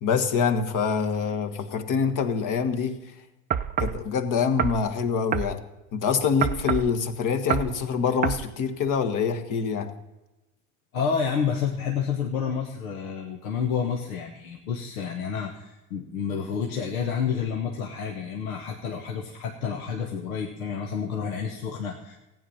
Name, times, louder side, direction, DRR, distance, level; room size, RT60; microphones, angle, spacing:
voice 1, 0.0-3.0 3.8-5.6 5.9-9.9, left 6 dB, 50° left, 7 dB, 1.5 m, -25 dB
sound 1, 3.5-4.0 4.6-4.8 5.3-5.5 6.4-6.9 7.5-7.7 8.2-8.4, right 8 dB, 20° right, 0.5 m, -26 dB
voice 2, 10.9-22.2, left 6 dB, 80° left, 3 dB, 1.4 m, -29 dB
15.0 x 9.2 x 5.6 m, 1.0 s
hypercardioid pair, 80°, 42 cm